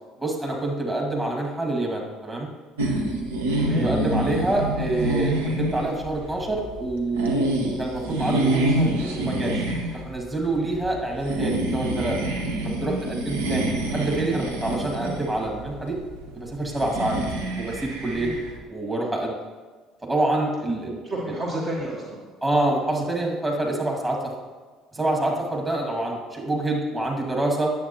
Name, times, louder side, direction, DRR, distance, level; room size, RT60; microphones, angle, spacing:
voice 1, 0.2-2.5 3.8-9.6 9.9-12.2 12.6-16.0 16.4-17.2 17.6-18.3 18.7-19.4 20.0-20.9 22.4-24.3 24.9-27.7, right 2 dB, 15° right, -1 dB, 2.0 m, -26 dB
sound 1, 2.8-18.6, right 1 dB, 75° right, 0.9 m, -27 dB
voice 2, 3.6-3.9 18.1-18.4 20.8-22.2 25.0-25.3, right 1 dB, 40° right, -3 dB, 1.2 m, -32 dB
9.2 x 7.5 x 3.0 m, 1.4 s
figure-of-eight pair, 55°, 0 cm